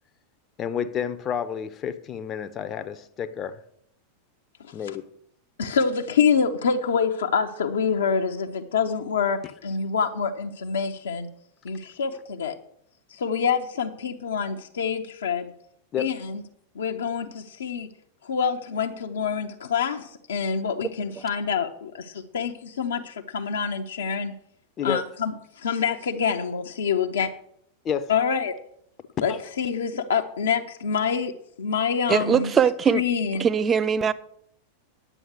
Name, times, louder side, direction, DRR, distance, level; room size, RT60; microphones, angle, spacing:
voice 1, 0.6-3.6 4.7-5.0 15.9-16.1 24.8-25.1 27.8-28.1 29.2-29.4, left 8 dB, 30° left, 0.6 m, -30 dB
voice 2, 5.6-11.3 11.6-12.5 13.1-15.5 16.0-16.4 16.8-17.9 18.2-24.3 24.8-27.3 28.1-28.6 29.2-31.3 31.6-32.5 32.9-33.4, left 6 dB, 65° left, 0.7 m, -26 dB
voice 3, 32.1-33.0 33.4-34.1, right 7 dB, 20° right, 0.6 m, -21 dB
9.9 x 7.8 x 6.4 m
figure-of-eight pair, 90°, 0 cm